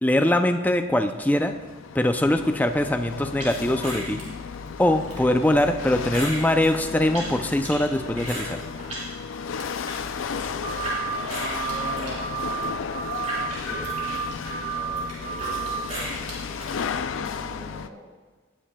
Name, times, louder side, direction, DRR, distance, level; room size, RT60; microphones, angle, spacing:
voice 1, 0.0-1.5 1.9-4.2 4.8-8.6, left 1 dB, 10° left, 7 dB, 0.4 m, -22 dB
Chatter / Hiss / Rattle, 1.0-17.9, left 6 dB, 90° left, 0.4 m, -34 dB
sound 1, 3.4-9.1 9.4-11.0 11.3-16.7, right 1 dB, 35° right, 3.9 m, -37 dB
sound 2, 10.6-11.1 11.4-11.9 12.2-12.6 12.9-13.4 13.7-14.2 14.5-15.0 15.2-15.7, right 9 dB, 60° left, 2.5 m, -32 dB
voice 2, 11.1-12.3 13.3-18.1, right 1 dB, 70° right, -2 dB, 2.8 m, -41 dB
18.5 x 10.0 x 2.3 m, 1.4 s
head